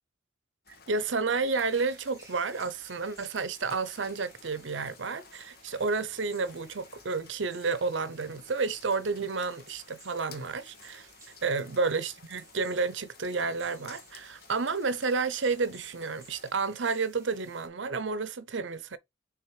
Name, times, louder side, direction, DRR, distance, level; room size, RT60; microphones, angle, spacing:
Rain, 0.7-16.5, left 6 dB, 50° left, 1.0 m, -55 dB
voice 1, 0.9-11.1 11.4-19.0, right 4 dB, 70° right, 0.7 m, -31 dB
sound 1, 1.4-17.7, right 3 dB, 15° right, 2.7 m, -57 dB
6.5 x 3.5 x 4.8 m
head